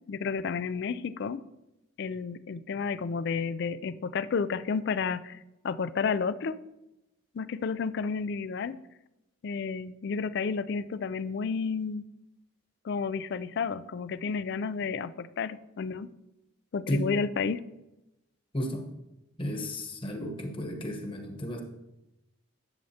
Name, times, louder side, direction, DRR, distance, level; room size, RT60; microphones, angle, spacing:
voice 1, 0.1-1.4 2.0-5.4 5.6-6.6 7.3-8.8 9.4-12.0 12.8-16.1 16.7-17.6, left 5 dB, 50° left, 15 dB, 0.3 m, -31 dB
voice 2, 18.5-18.9 19.4-21.6, equal, 25° left, 4 dB, 1.1 m, -33 dB
11.0 x 7.7 x 2.8 m, 0.94 s
head